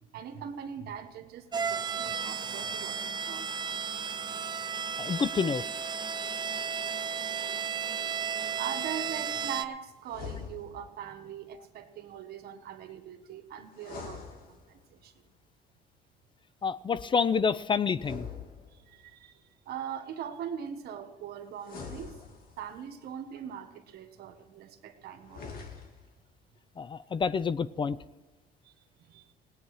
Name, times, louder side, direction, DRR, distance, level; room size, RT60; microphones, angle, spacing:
voice 1, 0.1-3.5 3.9-4.0 8.5-15.1 18.7-22.2 22.6-25.4 28.6-28.7 29.0-29.3, right 8 dB, 70° right, 8 dB, 1.5 m, -41 dB
sound 1, 1.5-9.6, right 7 dB, 25° right, 0.6 m, -34 dB
voice 2, 5.0-5.6 16.6-18.3 26.8-28.0, left 6 dB, 30° left, 17 dB, 0.4 m, -28 dB
sound 2, 10.0-11.0 13.7-15.0 17.9-19.1 21.6-22.8 25.2-26.2, left 5 dB, 60° left, 2.2 m, -44 dB
18.5 x 8.8 x 4.8 m, 1.2 s
cardioid pair, 110°, 17 cm